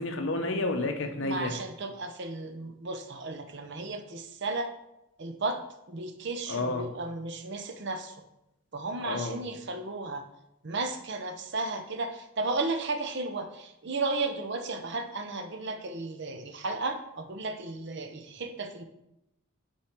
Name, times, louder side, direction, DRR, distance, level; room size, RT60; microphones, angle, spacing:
voice 1, 0.0-1.5 6.5-6.9 9.0-9.4, left 2 dB, 55° left, 4 dB, 0.8 m, -30 dB
voice 2, 1.2-4.7 5.2-5.6 5.9-8.2 8.7-10.3 10.6-18.8, right 3 dB, 50° right, 7 dB, 0.7 m, -34 dB
7.7 x 4.4 x 4.5 m, 0.87 s
head